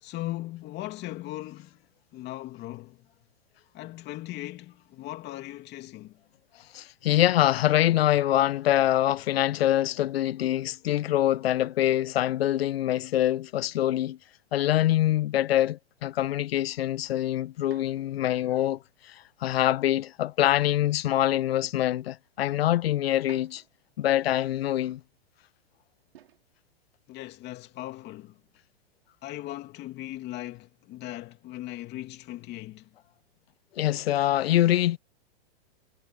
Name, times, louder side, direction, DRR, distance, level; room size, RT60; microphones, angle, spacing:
voice 1, 0.0-1.8 2.1-3.1 3.7-6.2 27.1-28.4 29.2-32.9, left 16 dB, 35° left, 2.8 m, -38 dB
voice 2, 6.7-14.2 14.5-18.8 19.1-19.2 19.4-23.6 24.0-25.0 33.8-35.0, left 13 dB, 75° left, 0.8 m, -24 dB
sound 1, 17.6-18.2 20.3-20.8 21.8-21.9 23.1-23.9 26.1-26.5 27.7-28.1, right 11 dB, 75° right, 5.7 m, -55 dB
hypercardioid pair, 125°, 30 cm